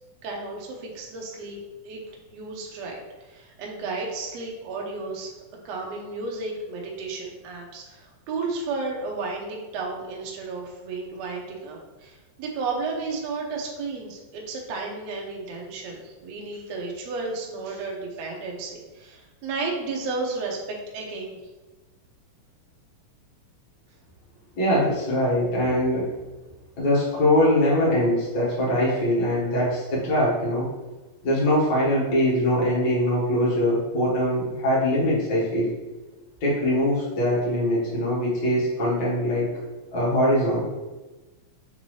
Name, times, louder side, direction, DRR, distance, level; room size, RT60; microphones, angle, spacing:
voice 1, 0.2-1.6 1.8-2.0 2.3-5.3 5.6-21.4, right 3 dB, 85° right, -1 dB, 1.5 m, -33 dB
voice 2, 24.6-26.1 26.8-30.7 31.2-35.7 36.4-39.5 39.9-40.6, left 1 dB, 55° left, -7 dB, 1.3 m, -22 dB
5.9 x 2.7 x 3.1 m, 1.2 s
omnidirectional pair, 3.9 m